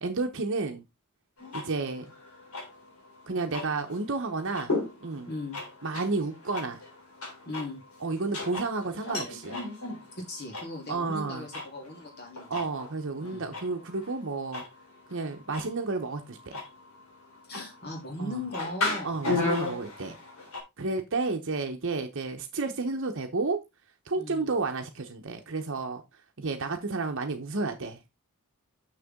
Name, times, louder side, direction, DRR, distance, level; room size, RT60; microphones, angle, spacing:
voice 1, 0.0-0.8 1.5-2.1 3.3-4.7 5.0-5.3 5.8-6.8 8.0-9.6 10.9-11.5 12.5-14.6 15.1-16.6 18.2-18.4 19.0-20.2 20.8-23.6 24.0-26.0 26.4-28.1, right 3 dB, 55° right, 0.9 m, -31 dB
sound 1, 1.4-20.6, left 2 dB, 75° left, 3.5 m, -36 dB
voice 2, 5.3-5.6 7.4-7.8 10.1-12.6 13.2-13.5 17.5-19.2 24.2-24.5, left 1 dB, 45° left, 3.0 m, -38 dB
6.7 x 6.6 x 3.6 m
head